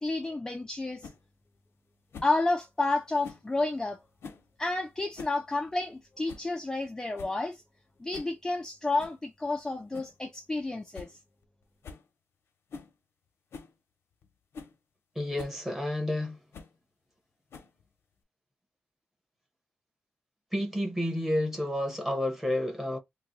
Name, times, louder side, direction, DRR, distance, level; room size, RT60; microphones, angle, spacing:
voice 1, 0.0-1.1 2.2-4.0 4.6-7.6 8.0-11.2, left 2 dB, 15° left, 0.4 m, -30 dB
sound 1, 1.0-1.2 2.1-2.4 3.2-3.5 4.2-4.5 5.0-5.4 5.7-5.8 6.3-6.5 6.9-7.0 7.2-7.4 8.1-8.3 9.0-9.2 9.9-10.2 10.5-10.6 10.9-11.1 11.4-11.5 11.8-12.1 12.7-12.9 13.5-13.7 14.2-14.3 14.5-14.7 15.4-15.6 16.5-16.8 17.5-17.9, left 5 dB, 90° left, 0.9 m, -46 dB
voice 2, 15.1-16.4 20.5-23.0, left 1 dB, 10° right, 1.0 m, -30 dB
2.9 x 2.2 x 3.9 m
wide cardioid pair, 180°, 4 cm